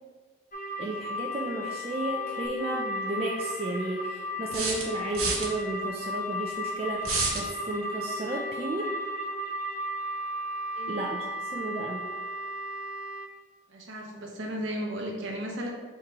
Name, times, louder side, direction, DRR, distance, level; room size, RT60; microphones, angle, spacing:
sound 1, 0.5-13.3, left 1 dB, 40° left, 0.4 m, -35 dB
voice 1, 0.8-8.9 10.9-11.3 11.5-12.1, right 2 dB, 30° right, -2 dB, 0.3 m, -33 dB
sound 2, 2.4-2.5 4.5-5.5 7.0-7.5, right 3 dB, 90° right, 1.0 m, -29 dB
voice 2, 13.7-15.7, equal, 65° right, 0 dB, 0.8 m, -35 dB
3.6 x 3.0 x 4.4 m, 1.4 s
head